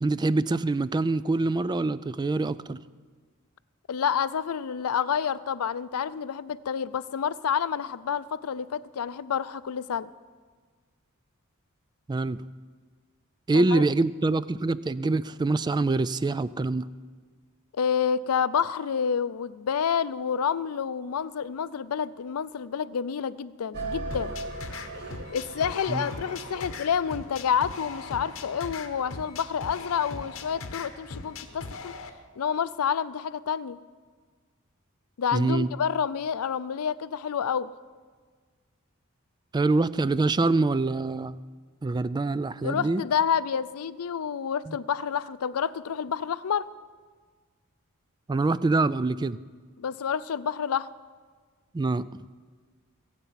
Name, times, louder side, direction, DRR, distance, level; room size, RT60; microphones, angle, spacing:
voice 1, 0.0-2.8 12.1-12.4 13.5-16.9 25.9-26.0 35.3-35.7 39.5-41.4 41.8-43.0 44.7-44.8 48.3-49.4 51.7-52.2, right 3 dB, 20° right, 17 dB, 0.3 m, -25 dB
voice 2, 3.9-10.1 13.5-13.8 17.7-24.4 25.3-31.9 32.4-33.8 35.2-37.7 42.6-46.7 49.8-50.9, left 7 dB, 85° left, 16 dB, 0.5 m, -29 dB
sound 1, 23.7-28.1, right 2 dB, 50° right, 1.9 m, -38 dB
sound 2, 24.1-32.1, left 4 dB, 65° left, 1.1 m, -40 dB
22.5 x 8.2 x 5.8 m, 1.6 s
head